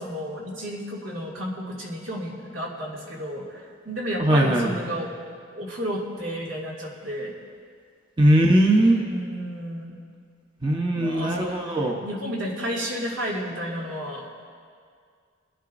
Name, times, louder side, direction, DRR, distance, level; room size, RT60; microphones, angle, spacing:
voice 1, 0.0-5.2 5.5-7.3 8.7-10.0 10.9-14.2, equal, 80° right, -4 dB, 2.4 m, -32 dB
voice 2, 4.2-4.7 8.2-9.0 10.6-12.0, right 1 dB, 25° right, 0 dB, 0.9 m, -19 dB
23.0 x 10.0 x 2.6 m, 2.1 s
head